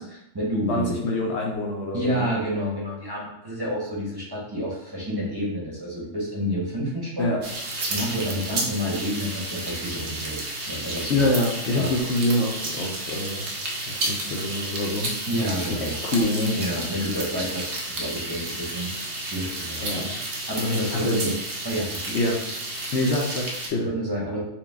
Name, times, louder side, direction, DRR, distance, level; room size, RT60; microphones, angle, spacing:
voice 1, 0.0-1.0 1.9-7.3 7.9-11.3 11.7-11.9 15.3-16.0 16.5-20.1 20.5-21.3 21.6-22.2 23.8-24.4, equal, 20° right, -6 dB, 1.0 m, -29 dB
voice 2, 0.7-2.3 7.2-7.4 11.1-13.5 13.9-15.1 15.6-16.6 19.8-20.1 20.6-21.3 22.1-22.4 22.9-23.9, left 1 dB, 65° left, -1 dB, 0.9 m, -25 dB
sound 1, 7.4-23.7, right 2 dB, 55° right, 0.9 m, -32 dB
4.6 x 2.2 x 3.4 m, 0.79 s
omnidirectional pair, 1.3 m